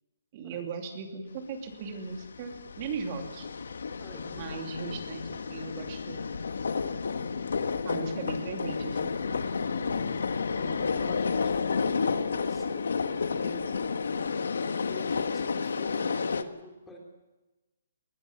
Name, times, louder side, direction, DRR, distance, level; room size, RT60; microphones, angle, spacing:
voice 1, 0.3-3.5 4.3-6.2 7.8-9.1, right 4 dB, 30° right, 4 dB, 2.7 m, -37 dB
sound 1, 2.1-16.4, left 5 dB, 80° left, 1.5 m, -31 dB
voice 2, 4.0-4.7 7.9-8.2 9.8-14.0 14.8-17.0, left 1 dB, 5° left, -1 dB, 3.7 m, -46 dB
20.5 x 20.5 x 7.1 m, 1.1 s
hypercardioid pair, 175°, 0 cm